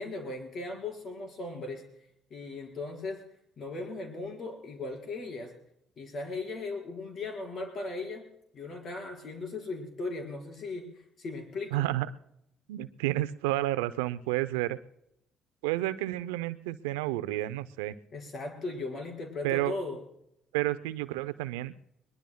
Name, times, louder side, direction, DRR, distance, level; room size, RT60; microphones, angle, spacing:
voice 1, 0.0-1.9 2.3-3.2 3.6-5.5 6.0-8.2 8.5-11.9 18.1-20.0, left 3 dB, 55° left, 1 dB, 4.7 m, -37 dB
voice 2, 11.7-12.1 12.7-14.8 15.6-18.0 19.4-19.7 20.5-21.7, right 16 dB, 85° right, 16 dB, 0.5 m, -30 dB
22.0 x 20.5 x 2.2 m, 0.79 s
hypercardioid pair, 55°, 0 cm